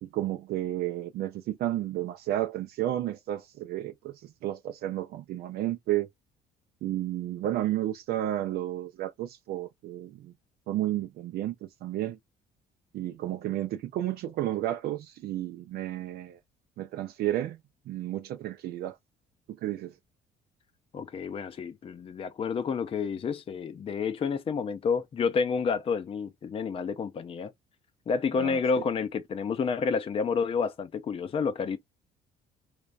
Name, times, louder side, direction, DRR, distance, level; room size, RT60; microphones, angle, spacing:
voice 1, 0.0-4.1 4.4-6.1 6.8-10.3 10.7-12.2 12.9-16.4 16.8-17.6 17.9-19.0 19.6-19.9 28.3-28.6, right 13 dB, 70° right, 0.5 m, -32 dB
voice 2, 20.9-27.5 28.1-31.8, left 5 dB, 35° left, 0.5 m, -29 dB
3.3 x 3.2 x 2.5 m
cardioid pair, 110°, 17 cm